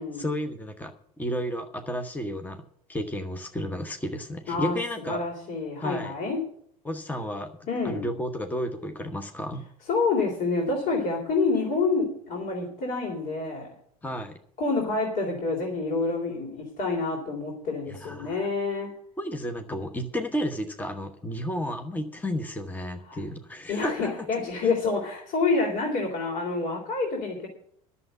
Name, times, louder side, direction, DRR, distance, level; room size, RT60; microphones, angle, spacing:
voice 1, 0.0-2.6 2.9-5.2 5.8-6.1 6.8-7.5 7.8-9.6 14.0-14.3 17.9-18.5 19.2-24.3, equal, 10° left, 6 dB, 1.1 m, -32 dB
voice 2, 5.0-6.4 7.7-8.1 9.9-13.7 14.6-18.9 23.1-23.2 23.7-27.5, left 3 dB, 55° left, -2 dB, 3.7 m, -27 dB
11.0 x 7.0 x 9.2 m, 0.64 s
hypercardioid pair, 75°, 19 cm